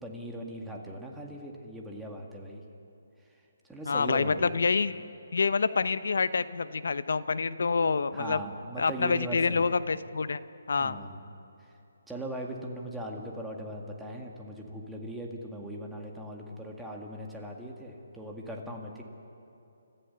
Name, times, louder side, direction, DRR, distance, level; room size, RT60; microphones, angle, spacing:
voice 1, 0.0-2.6 3.2-4.6 8.1-9.7 10.7-11.3 11.6-11.8 12.1-19.0, right 1 dB, 5° right, -1 dB, 1.9 m, -40 dB
voice 2, 3.9-5.0 5.3-8.4 8.8-10.4 10.7-11.0, left 4 dB, 70° left, 14 dB, 0.8 m, -27 dB
30.0 x 14.5 x 6.9 m, 2.8 s
hypercardioid pair, 150°, 0 cm